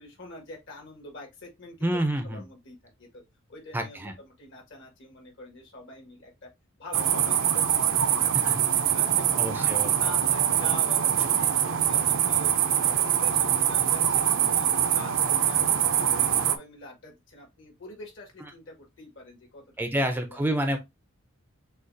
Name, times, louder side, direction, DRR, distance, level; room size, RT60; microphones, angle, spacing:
voice 1, 0.0-3.2 3.5-6.5 6.8-8.6 8.9-12.5 12.8-19.6 20.0-20.4, left 1 dB, 65° left, 1.7 m, -45 dB
voice 2, 1.8-2.4 3.7-4.1 8.4-8.6 9.4-9.9 19.8-20.8, right 1 dB, 10° right, 0.5 m, -28 dB
sound 1, 6.9-16.6, right 9 dB, 65° right, 0.6 m, -24 dB
6.3 x 2.4 x 2.6 m
head